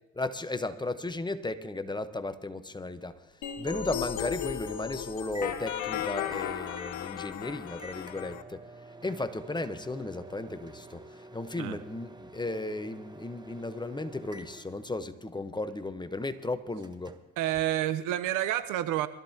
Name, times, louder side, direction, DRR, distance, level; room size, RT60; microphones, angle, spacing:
voice 1, 0.1-3.1 3.6-8.7 9.0-17.2, left 2 dB, 15° left, 10 dB, 1.0 m, -35 dB
Microwave oven, 2.7-18.4, right 1 dB, 15° right, 1.1 m, -51 dB
sound 1, 3.4-8.4, left 9 dB, 60° left, 1.2 m, -35 dB
voice 2, 17.4-19.1, right 13 dB, 70° right, 12 dB, 0.8 m, -29 dB
23.0 x 13.5 x 2.8 m, 0.98 s
supercardioid pair, 70°, 33 cm